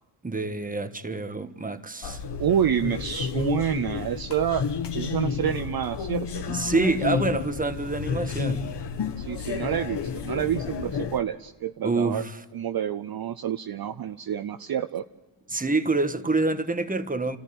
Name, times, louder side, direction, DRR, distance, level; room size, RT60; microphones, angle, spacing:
voice 1, 0.2-2.2 6.5-8.7 11.8-12.4 15.5-17.4, right 3 dB, 15° right, 1.4 m, -27 dB
sound 1, 2.0-11.2, left 6 dB, 55° left, 1.3 m, -31 dB
voice 2, 2.4-4.6 4.9-6.4 9.2-12.2 12.5-15.1, right 9 dB, 45° right, 0.7 m, -28 dB
27.0 x 14.0 x 9.4 m
cardioid pair, 70°, 49 cm